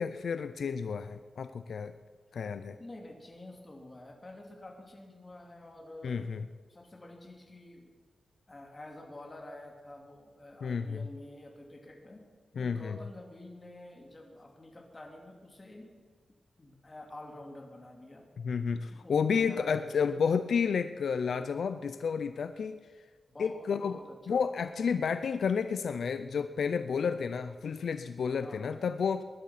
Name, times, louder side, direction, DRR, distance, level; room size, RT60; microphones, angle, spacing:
voice 1, 0.0-1.9 2.3-2.8 6.0-6.4 10.6-11.1 12.6-13.0 18.4-22.8 23.4-24.0 24.3-29.2, left 6 dB, 80° left, 10 dB, 0.6 m, -31 dB
voice 2, 2.7-6.2 6.7-7.9 8.5-12.2 12.6-15.9 16.6-18.3 18.9-20.2 23.3-24.4 28.4-28.8, left 1 dB, 25° left, 1 dB, 2.8 m, -48 dB
20.5 x 11.0 x 5.9 m, 1.6 s
wide cardioid pair, 150°, 0 cm